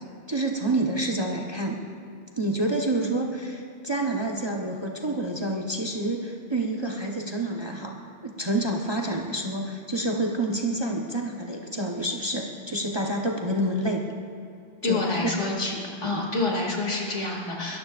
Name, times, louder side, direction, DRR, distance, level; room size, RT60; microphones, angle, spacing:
voice 1, 0.3-1.8 2.4-14.0 14.8-15.3 16.0-16.2, right 1 dB, 20° right, 0 dB, 1.1 m, -28 dB
voice 2, 14.8-15.7 16.0-17.8, left 2 dB, 65° left, -2 dB, 2.9 m, -27 dB
23.0 x 14.0 x 2.5 m, 2.5 s
omnidirectional pair, 1.3 m